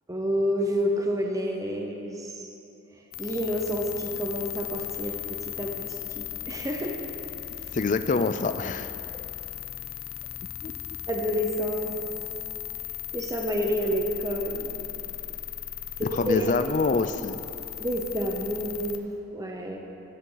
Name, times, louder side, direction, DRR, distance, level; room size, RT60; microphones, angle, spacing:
voice 1, 0.1-2.5 2.9-7.0 9.1-9.2 11.1-11.9 12.7-12.8 13.1-14.7 16.0-16.4 17.8-19.0 19.3-19.8, equal, 15° right, 1 dB, 0.8 m, -29 dB
sound 1, 3.1-19.0, left 13 dB, 85° left, 0.7 m, -37 dB
voice 2, 7.7-8.9 10.6-10.7 16.0-17.4, left 4 dB, 40° left, 10 dB, 0.4 m, -26 dB
14.0 x 10.0 x 4.0 m, 2.8 s
head